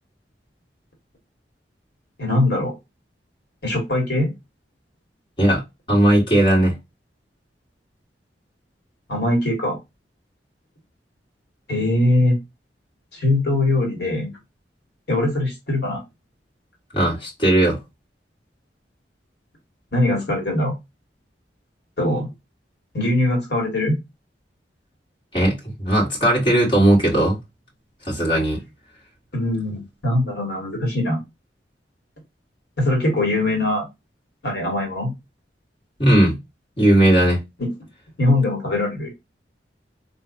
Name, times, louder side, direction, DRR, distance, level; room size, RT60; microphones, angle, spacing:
voice 1, 2.2-2.7 3.6-4.3 9.1-9.8 11.7-12.4 13.1-14.3 15.1-16.0 19.9-20.7 22.0-22.3 22.9-24.0 29.3-31.2 32.8-33.9 34.4-35.1 37.6-37.7 38.2-39.1, left 1 dB, 65° left, 1.5 m, -21 dB
voice 2, 5.9-6.7 16.9-17.8 25.3-27.4 28.1-28.6 36.0-36.4 36.8-37.4, right 1 dB, 30° left, 1.8 m, -17 dB
3.8 x 2.5 x 2.5 m
head